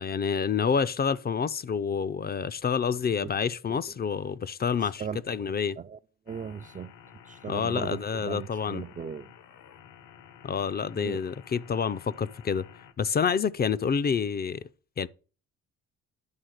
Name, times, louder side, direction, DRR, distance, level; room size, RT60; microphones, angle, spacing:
voice 1, 0.0-5.8 7.5-8.8 10.4-12.7 13.0-14.7 15.0-15.1, left 6 dB, 30° left, 0.4 m, -28 dB
voice 2, 4.8-5.2 5.8-6.0 6.3-9.3 11.0-11.2, right 7 dB, 25° right, 0.4 m, -38 dB
sound 1, 6.3-12.9, left 8 dB, 80° left, 1.1 m, -52 dB
10.5 x 3.8 x 6.4 m
cardioid pair, 90°, 30 cm